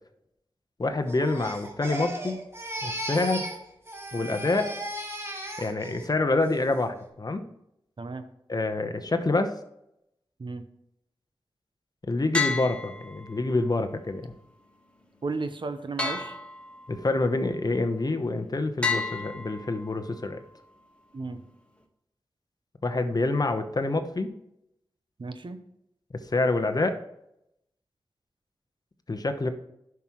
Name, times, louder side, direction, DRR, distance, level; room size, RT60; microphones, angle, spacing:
voice 1, 0.8-2.4 2.8-3.5 4.1-4.7 5.6-7.4 8.5-9.5 12.1-14.3 16.9-20.4 22.8-24.3 26.2-27.0 29.1-29.5, left 2 dB, 45° left, 7 dB, 0.9 m, -27 dB
Crying sobbing, 1.1-3.6 3.9-6.1 6.4-6.8, right 1 dB, 25° right, 1.8 m, -36 dB
sound 1, 12.3-13.6 16.0-17.1 18.8-20.1, left 4 dB, 10° left, 1.4 m, -31 dB
voice 2, 15.2-16.4 21.1-21.4 25.2-25.6, right 3 dB, 60° right, 9 dB, 0.8 m, -34 dB
11.0 x 5.9 x 3.1 m, 0.80 s
cardioid pair, 55°, 9 cm